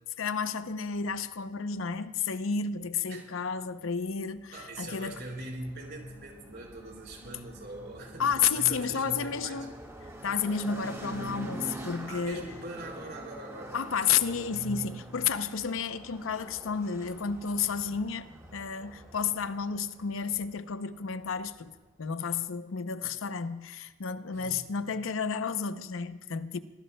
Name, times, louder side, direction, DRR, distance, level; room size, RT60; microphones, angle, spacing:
voice 1, 0.2-5.2 8.2-9.7 10.2-12.5 13.7-26.6, left 6 dB, 80° left, 0.6 m, -31 dB
sound 1, 4.3-21.8, right 1 dB, 15° right, 1.6 m, -46 dB
voice 2, 4.5-9.7 12.1-13.8 14.2-14.9 24.3-24.7, right 2 dB, 55° right, 4.2 m, -41 dB
25.5 x 17.5 x 2.2 m
head